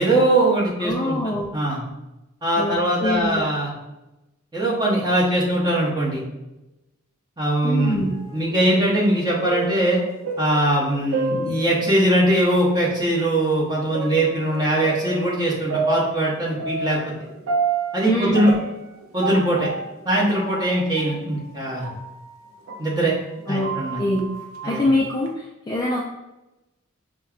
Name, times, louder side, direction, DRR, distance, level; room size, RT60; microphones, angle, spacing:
voice 1, 0.0-1.8 2.4-3.7 4.5-6.2 7.4-8.0 8.3-10.0 10.4-17.0 17.9-18.5 19.1-19.7 20.0-21.9 22.8-23.1 23.5-24.0 24.6-24.8, right 1 dB, 20° right, -6 dB, 1.0 m, -21 dB
voice 2, 0.8-1.5 2.6-3.4 7.6-8.1 18.0-18.5 23.5-24.2 24.6-26.0, left 1 dB, 20° left, -3 dB, 0.3 m, -24 dB
sound 1, 7.8-12.4 12.9-13.0 13.9-23.0 23.4-25.3, right 3 dB, 75° right, 0.5 m, -30 dB
5.3 x 2.2 x 2.4 m, 0.97 s
head